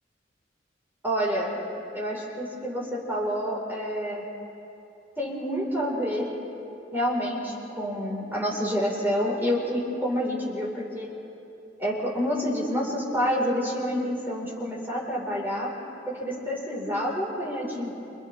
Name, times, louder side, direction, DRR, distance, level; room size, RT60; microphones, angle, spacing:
voice 1, 1.0-1.6 1.9-4.2 5.2-6.3 6.9-11.1 11.8-15.7 16.1-17.9, equal, 10° right, -5 dB, 5.1 m, -28 dB
29.0 x 28.5 x 3.7 m, 2.8 s
head